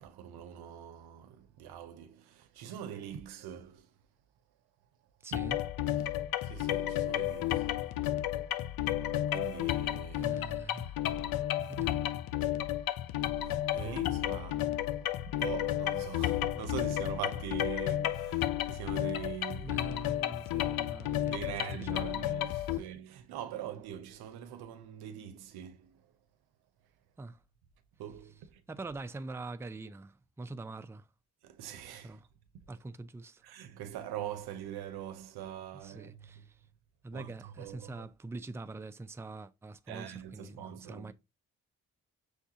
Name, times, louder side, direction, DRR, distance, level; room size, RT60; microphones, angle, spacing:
voice 1, 0.0-3.9 6.0-6.1 6.4-8.0 8.3-8.8 9.1-10.5 12.7-20.0 21.3-26.1 28.0-28.6 31.4-32.2 32.5-32.7 33.4-36.5 37.1-38.1 39.9-41.1, right 10 dB, 90° right, 0.7 m, -43 dB
voice 2, 5.2-5.6 10.1-11.0 11.7-12.2 13.8-14.0 19.6-22.3 22.7-22.8 27.2-27.4 28.7-31.1 32.0-32.3 32.7-33.4 35.8-36.6 37.0-41.1, right 3 dB, 5° right, 0.4 m, -44 dB
sound 1, 5.3-22.8, left 13 dB, 75° left, 0.5 m, -32 dB
6.3 x 2.3 x 2.8 m
cardioid pair, 60°, 37 cm